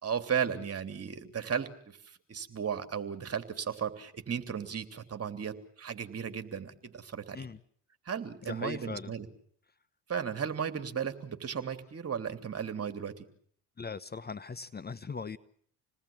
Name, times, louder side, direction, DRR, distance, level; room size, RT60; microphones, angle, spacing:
voice 1, 0.0-7.4 8.0-9.3 10.1-13.3, right 7 dB, 40° right, 8 dB, 3.3 m, -35 dB
voice 2, 8.4-9.1 13.8-15.4, left 5 dB, 25° left, 15 dB, 1.1 m, -39 dB
28.5 x 19.5 x 9.0 m, 0.62 s
hypercardioid pair, 65°, 39 cm